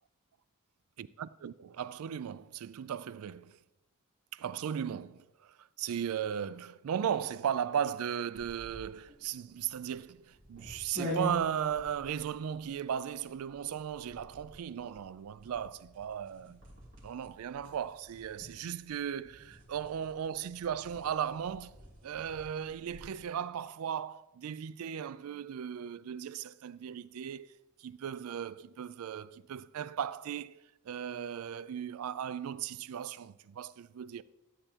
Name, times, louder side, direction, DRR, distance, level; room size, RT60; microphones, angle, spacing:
voice 1, 1.0-3.6 4.3-16.6 17.0-21.8 22.0-27.5 27.8-34.2, right 8 dB, 85° right, 0.4 m, -37 dB
sound 1, 8.3-23.2, equal, 60° right, 3.4 m, -46 dB
13.0 x 8.9 x 2.9 m
head